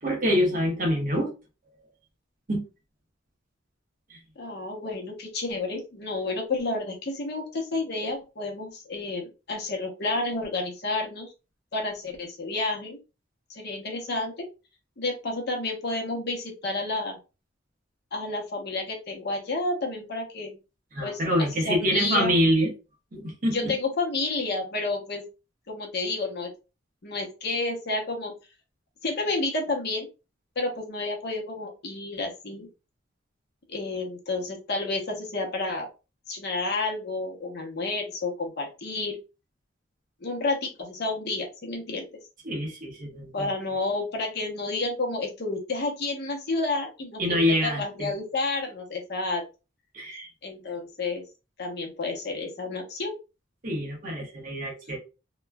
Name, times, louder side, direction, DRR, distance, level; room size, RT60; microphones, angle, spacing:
voice 1, 0.0-1.3 2.5-2.6 4.1-4.2 20.9-22.7 23.1-23.7 42.4-43.5 47.2-48.1 49.9-50.3 53.6-55.0, equal, 45° right, 1.0 m, -26 dB
voice 2, 4.4-11.3 11.7-13.0 13.5-14.4 15.0-17.2 18.1-20.6 21.0-21.2 21.6-22.3 23.5-25.2 25.7-26.5 27.0-28.3 29.0-30.1 30.6-32.7 33.7-35.9 36.3-39.2 40.2-42.1 43.3-49.4 50.4-51.2 51.6-53.1, left 3 dB, 60° left, 0.8 m, -30 dB
2.9 x 2.2 x 2.2 m
head